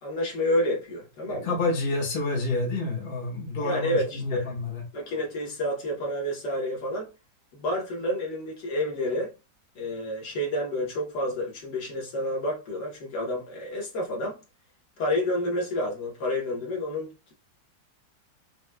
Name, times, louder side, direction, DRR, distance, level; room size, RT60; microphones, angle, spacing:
voice 1, 0.0-1.5 3.6-4.5 4.9-7.1 7.5-9.3 9.7-14.4 15.0-17.3, left 1 dB, 65° left, 1.6 m, -29 dB
voice 2, 1.3-4.8, left 3 dB, 40° left, 1.0 m, -29 dB
4.5 x 2.3 x 2.2 m
omnidirectional pair, 2.0 m